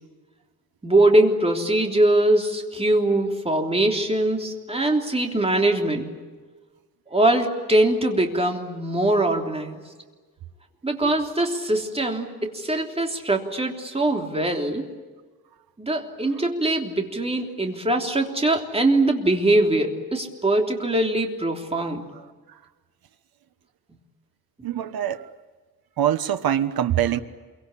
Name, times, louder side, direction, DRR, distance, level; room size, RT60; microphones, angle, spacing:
voice 1, 0.8-6.1 7.1-9.8 10.8-14.8 15.8-22.1, right 1 dB, 15° right, 2 dB, 3.3 m, -22 dB
voice 2, 24.6-25.2 26.0-27.2, right 10 dB, 85° right, 10 dB, 1.3 m, -23 dB
27.5 x 24.0 x 8.5 m, 1.4 s
wide cardioid pair, 140°, 36 cm